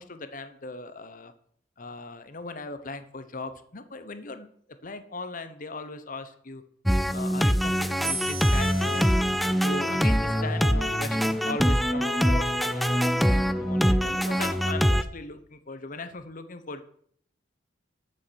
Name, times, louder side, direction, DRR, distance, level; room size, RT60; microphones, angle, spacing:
voice 1, 0.0-1.3 1.8-4.5 4.8-6.6 7.1-9.1 9.6-16.8, left 3 dB, 45° left, 10 dB, 1.0 m, -39 dB
sound 1, 6.9-15.0, equal, ahead, 0.4 m, -24 dB
sound 2, 8.0-11.3, right 4 dB, 35° right, 5.5 m, -40 dB
Wind instrument woodwind instrument, 8.5-15.1, left 5 dB, 75° right, 3.4 m, -42 dB
13.0 x 6.5 x 6.4 m, 0.64 s
head